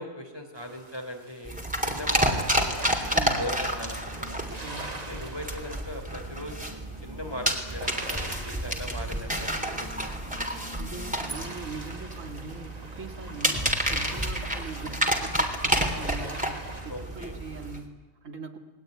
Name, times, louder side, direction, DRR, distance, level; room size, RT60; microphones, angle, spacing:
voice 1, 0.0-2.9 3.3-4.4 5.1-6.7 7.0-10.1 16.9-17.4, left 1 dB, 20° left, 4 dB, 3.8 m, -39 dB
sound 1, 0.5-17.8, right 2 dB, 30° right, 2.1 m, -45 dB
sound 2, 1.4-17.8, right 1 dB, 5° right, 3.5 m, -30 dB
sound 3, 2.7-5.7 6.2-12.7 13.1-15.8, left 1 dB, 50° left, 7.0 m, -50 dB
voice 2, 3.1-3.5 4.6-5.0 10.8-13.6 13.9-18.6, right 3 dB, 75° right, 4 dB, 2.5 m, -41 dB
30.0 x 20.5 x 9.4 m, 1.3 s
omnidirectional pair, 1.3 m